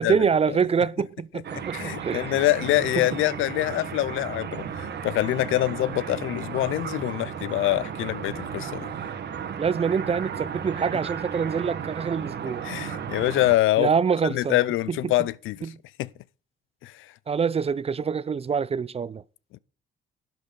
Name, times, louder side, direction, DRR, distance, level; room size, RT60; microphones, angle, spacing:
voice 1, 0.0-2.3 3.0-3.1 9.6-12.7 13.8-14.6 14.9-15.1 15.6-15.8 17.3-19.2, right 6 dB, 30° right, 0.5 m, -25 dB
sound 1, 1.4-13.6, right 7 dB, 60° right, 1.3 m, -34 dB
voice 2, 1.7-8.9 12.6-13.9 14.3-15.6 16.0-16.1 16.8-17.1 19.5-19.6, left 16 dB, 85° left, 0.5 m, -25 dB
11.5 x 8.7 x 3.8 m
cardioid pair, 90°, 20 cm